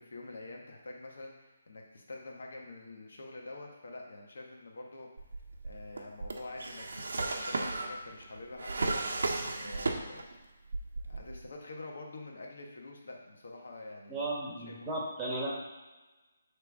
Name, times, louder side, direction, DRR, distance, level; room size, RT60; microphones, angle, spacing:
voice 1, 0.0-5.1 5.6-10.2 11.0-14.3 14.6-15.0, left 2 dB, 70° left, 0 dB, 1.4 m, -46 dB
Drawer open or close, 5.2-10.4 10.7-11.5, right 3 dB, 75° right, 0.9 m, -35 dB
voice 2, 14.1-15.5, right 2 dB, 15° right, -5 dB, 1.3 m, -35 dB
6.6 x 3.4 x 4.7 m, 1.1 s
hypercardioid pair, 160°, 0 cm